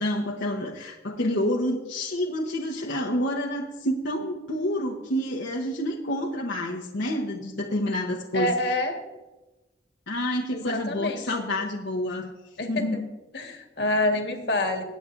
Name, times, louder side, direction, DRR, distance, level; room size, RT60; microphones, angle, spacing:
voice 1, 0.0-8.5 10.1-12.3 12.7-13.1, left 1 dB, 85° left, -1 dB, 1.1 m, -28 dB
voice 2, 8.3-9.0 10.5-11.2 12.6-13.0 13.3-14.8, left 1 dB, 70° left, 4 dB, 1.7 m, -27 dB
20.0 x 9.3 x 2.6 m, 1.1 s
head